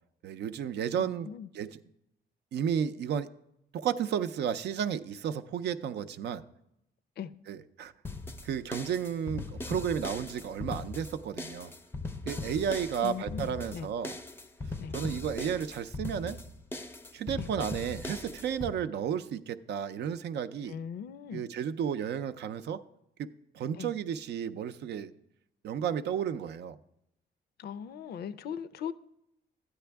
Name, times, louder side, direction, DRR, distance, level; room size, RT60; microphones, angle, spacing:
voice 1, 0.2-1.3 1.5-1.8 2.5-3.3 3.7-6.4 7.5-7.9 8.4-11.7 12.3-14.1 14.9-16.4 17.1-20.8 21.3-22.8 23.2-25.1 25.6-26.8, right 8 dB, 75° right, 0.5 m, -33 dB
voice 2, 1.0-1.5 7.2-7.3 13.0-13.9 14.8-14.9 17.4-17.5 20.7-21.4 23.7-23.9 27.6-28.9, left 8 dB, 65° left, 0.5 m, -39 dB
sound 1, 8.0-18.7, left 2 dB, 15° left, 0.5 m, -39 dB
12.5 x 9.5 x 3.4 m
cardioid pair, 130°, 18 cm